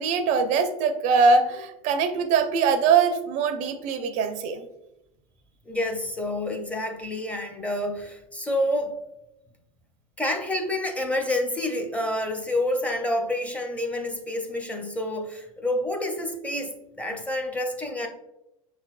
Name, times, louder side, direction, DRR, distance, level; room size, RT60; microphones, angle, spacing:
voice 1, 0.0-4.7, right 5 dB, 45° right, 9 dB, 0.5 m, -22 dB
voice 2, 5.7-9.0 10.2-18.1, left 1 dB, 5° left, 3 dB, 0.6 m, -28 dB
5.5 x 3.3 x 2.4 m, 0.89 s
hypercardioid pair, 95°, 19 cm